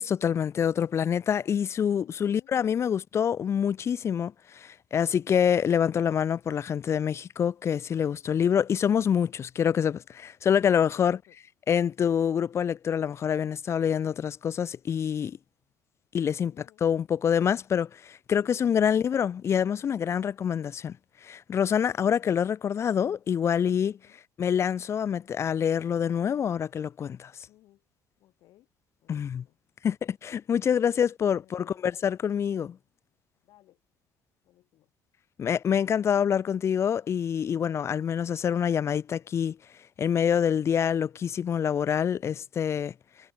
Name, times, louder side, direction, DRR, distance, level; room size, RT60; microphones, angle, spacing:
voice 1, 0.0-11.2 11.7-15.4 16.1-21.0 21.2-24.0 24.4-27.3 29.1-29.4 29.8-32.8 35.4-39.6 40.0-42.9, left 8 dB, 40° left, 0.5 m, -26 dB
voice 2, 2.0-2.5 10.9-11.4 16.5-16.8 17.1-17.3 24.0-24.2 27.5-27.8 28.2-28.7 29.0-29.6 30.6-31.0 31.4-31.7 33.4-33.8 34.4-34.9 42.2-42.5, left 15 dB, 70° left, 5.3 m, -59 dB
supercardioid pair, 80°, 7 cm